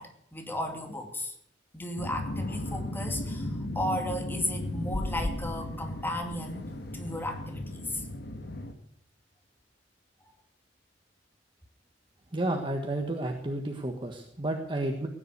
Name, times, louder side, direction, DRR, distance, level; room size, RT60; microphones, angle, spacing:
voice 1, 0.0-1.3 1.7-8.0, left 1 dB, 10° left, 3 dB, 2.5 m, -35 dB
sound 1, 2.0-8.7, left 1 dB, 60° left, 1.6 m, -35 dB
voice 2, 12.3-15.1, right 1 dB, 25° right, 3 dB, 1.5 m, -31 dB
17.5 x 10.0 x 6.8 m, 0.71 s
head